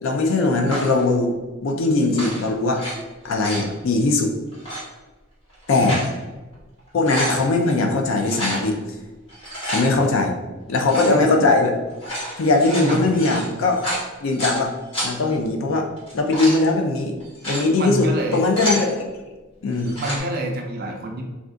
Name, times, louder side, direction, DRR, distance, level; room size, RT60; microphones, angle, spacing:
voice 1, 0.0-1.3 1.6-2.8 3.2-4.3 5.7-6.0 6.9-8.8 9.6-10.3 10.7-11.8 12.4-13.9 14.2-14.7 15.0-15.9 16.1-17.1 17.5-19.0 19.6-20.0, left 3 dB, 65° left, 3 dB, 0.4 m, -20 dB
sound 1, 0.7-1.0 2.0-2.9 3.2-3.7 4.5-4.8 5.5-6.1 6.5-6.6 6.9-7.4 8.2-8.6 9.3-9.8 10.8-11.2 11.9-14.6 14.9-15.1 16.0-16.6 17.2-17.6 18.2-18.8 19.7-20.2, equal, 25° left, 1.1 m, -29 dB
voice 2, 12.8-13.2 17.8-18.4 20.0-21.2, right 1 dB, 45° right, 2 dB, 0.4 m, -27 dB
2.5 x 2.3 x 3.5 m, 1.2 s
head